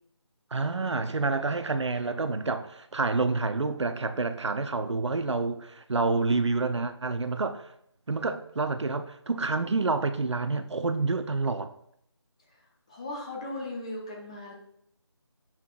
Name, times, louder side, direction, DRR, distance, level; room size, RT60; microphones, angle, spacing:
voice 1, 0.5-7.7 8.1-11.7, right 3 dB, 75° right, 0.6 m, -28 dB
voice 2, 12.9-14.5, left 2 dB, 15° left, 0.6 m, -37 dB
7.6 x 5.7 x 2.4 m
figure-of-eight pair, 165°, 15 cm